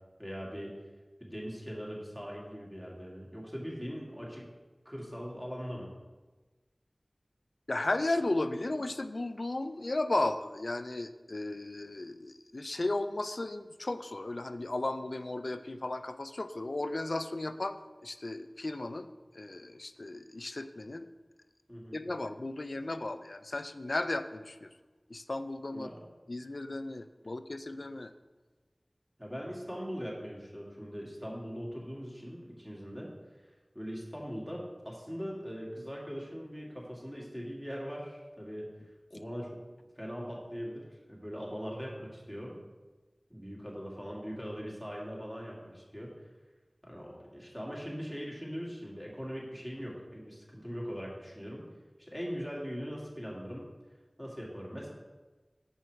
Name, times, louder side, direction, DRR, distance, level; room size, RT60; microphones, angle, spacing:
voice 1, 0.2-0.7 1.2-4.5 4.9-5.9 21.7-22.0 25.7-26.0 29.2-33.1 33.7-38.7 39.1-39.6 40.0-42.6 43.3-46.1 46.8-51.6 52.0-53.7 54.2-54.9, equal, 10° right, -3 dB, 2.0 m, -41 dB
voice 2, 7.7-19.1 19.4-21.1 21.9-24.7 25.1-25.9 26.3-28.1, left 2 dB, 75° left, 11 dB, 0.4 m, -35 dB
5.4 x 4.6 x 6.3 m, 1.2 s
wide cardioid pair, 45°, 0 cm